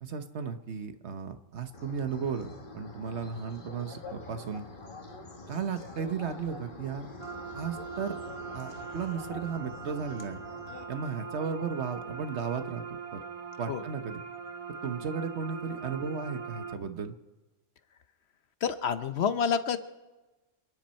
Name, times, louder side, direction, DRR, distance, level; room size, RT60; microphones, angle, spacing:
voice 1, 0.0-4.6 5.5-7.1 7.5-8.2 8.5-10.4 10.9-12.8 13.1-13.2 13.6-14.2 14.8-17.1, right 6 dB, 65° right, 8 dB, 1.2 m, -35 dB
sound 1, 1.7-10.8, left 3 dB, 40° left, 1.5 m, -46 dB
sound 2, 7.2-16.8, right 5 dB, 35° right, 0.6 m, -41 dB
voice 2, 18.6-19.8, left 7 dB, 60° left, 11 dB, 0.9 m, -28 dB
28.0 x 10.5 x 4.3 m, 1.1 s
omnidirectional pair, 1.3 m